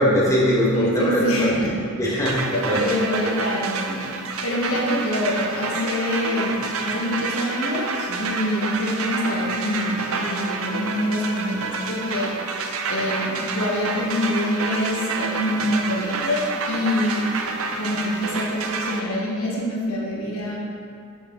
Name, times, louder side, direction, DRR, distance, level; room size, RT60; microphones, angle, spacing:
voice 1, 0.0-1.5 2.0-2.8, equal, 15° left, -6 dB, 1.3 m, -20 dB
voice 2, 0.7-1.7 2.1-2.2 2.5-12.4 12.9-17.3 17.7-20.6, left 1 dB, 75° left, -3 dB, 1.5 m, -25 dB
sound 1, 2.3-19.0, right 4 dB, 70° right, 0.6 m, -29 dB
7.0 x 6.9 x 4.0 m, 2.4 s
head